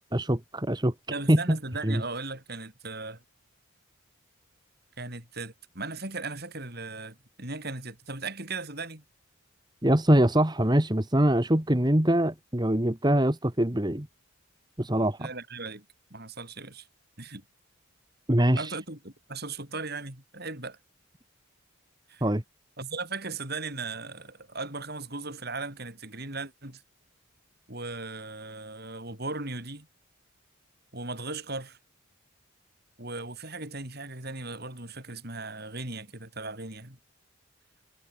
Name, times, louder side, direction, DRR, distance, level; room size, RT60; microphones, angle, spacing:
voice 1, 0.1-0.9 1.3-1.6 1.8-2.0 9.8-14.1 14.8-15.3 18.3-18.7 22.2-22.4, right 1 dB, 20° right, 1.6 m, -23 dB
voice 2, 1.1-3.2 5.0-9.0 15.2-16.9 17.2-17.4 18.6-20.8 22.1-22.2 22.8-26.8 27.7-29.9 30.9-31.8 33.0-37.0, right 3 dB, 50° right, 6.2 m, -37 dB
head